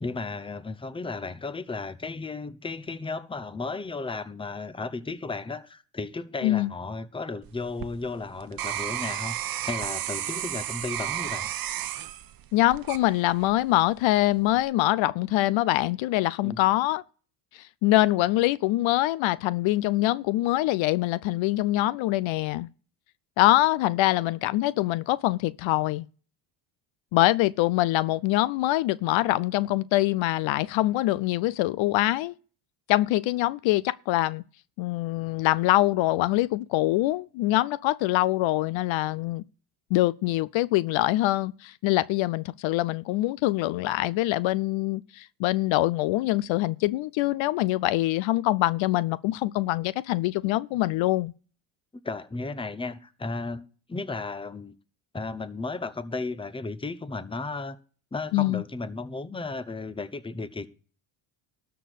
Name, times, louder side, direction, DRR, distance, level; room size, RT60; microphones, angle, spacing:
voice 1, 0.0-9.4 9.7-11.5 16.4-16.6 52.0-54.7 55.1-57.8 58.1-60.7, left 3 dB, 10° left, 0.8 m, -34 dB
sound 1, 7.4-13.6 14.2-14.6, right 11 dB, 45° right, 0.9 m, -33 dB
voice 2, 12.5-17.0 17.5-22.7 23.4-26.0 27.1-32.3 32.9-34.4 34.8-39.4 39.9-51.3 58.3-58.6, left 17 dB, 65° left, 0.6 m, -24 dB
12.5 x 4.6 x 8.2 m
cardioid pair, 100°, 50 cm